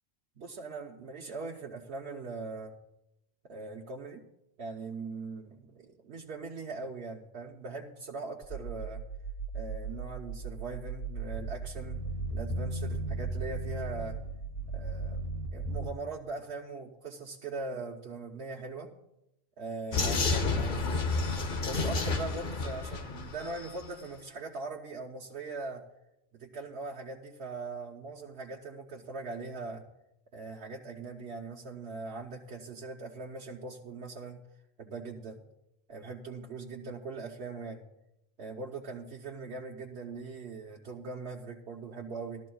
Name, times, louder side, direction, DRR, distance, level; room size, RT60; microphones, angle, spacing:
voice 1, 0.4-2.8 3.5-4.2 4.6-9.0 9.5-12.0 12.3-14.2 14.7-15.3 15.5-18.9 19.6-21.1 21.6-25.8 26.3-29.8 30.3-34.4 34.8-35.4 35.9-37.8 38.4-42.4, right 3 dB, 80° right, -2 dB, 1.2 m, -41 dB
sound 1, 8.4-15.9, right 3 dB, 35° left, 1.3 m, -36 dB
Vehicle, 19.9-23.8, left 3 dB, 50° left, 0.9 m, -30 dB
18.5 x 13.0 x 2.3 m, 0.88 s
omnidirectional pair, 1.1 m